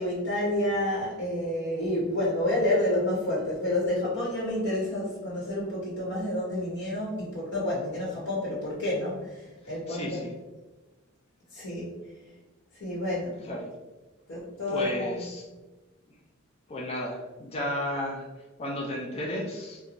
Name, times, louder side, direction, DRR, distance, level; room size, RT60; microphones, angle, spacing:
voice 1, 0.0-9.4 9.7-10.2 11.5-11.9 12.8-13.4 14.3-15.2, left 1 dB, 55° left, -7 dB, 1.1 m, -29 dB
voice 2, 9.6-10.4 13.4-13.7 14.7-15.5 16.7-19.8, left 1 dB, 30° left, -1 dB, 0.4 m, -34 dB
4.4 x 2.2 x 2.6 m, 1.2 s
head